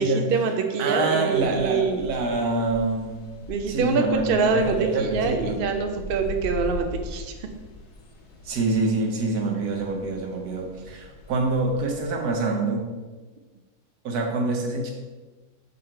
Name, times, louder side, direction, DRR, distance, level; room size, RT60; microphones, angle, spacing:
voice 1, 0.0-2.1 3.5-7.3, right 4 dB, 55° right, 5 dB, 0.6 m, -25 dB
voice 2, 0.8-3.2 3.7-5.6 8.4-12.8 14.0-14.9, right 3 dB, 80° right, 1 dB, 1.5 m, -26 dB
sound 1, 1.3-12.4, left 2 dB, 85° left, 1.6 m, -40 dB
6.6 x 4.0 x 4.3 m, 1.3 s
omnidirectional pair, 1.6 m